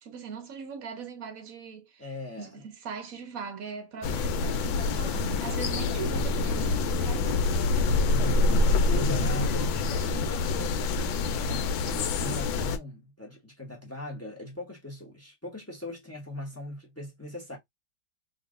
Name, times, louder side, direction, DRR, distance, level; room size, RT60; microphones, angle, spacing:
voice 1, 0.0-2.1 2.4-7.5, right 6 dB, 65° right, 0.9 m, -40 dB
voice 2, 2.0-2.6 8.0-17.6, left 1 dB, 15° left, 0.4 m, -41 dB
sound 1, 4.0-12.8, left 3 dB, 80° left, 1.3 m, -26 dB
2.9 x 2.7 x 3.6 m
omnidirectional pair, 2.2 m